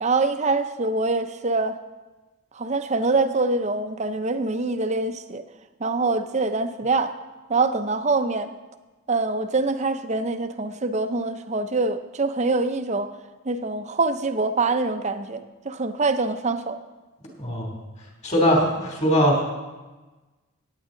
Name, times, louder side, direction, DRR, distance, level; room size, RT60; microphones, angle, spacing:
voice 1, 0.0-1.8 2.6-5.4 5.8-7.1 7.5-8.5 9.1-13.1 13.5-16.8, right 3 dB, 35° right, 9 dB, 0.6 m, -24 dB
voice 2, 17.4-17.7 18.2-19.4, equal, 30° left, 0 dB, 2.8 m, -20 dB
17.5 x 9.2 x 3.8 m, 1.2 s
head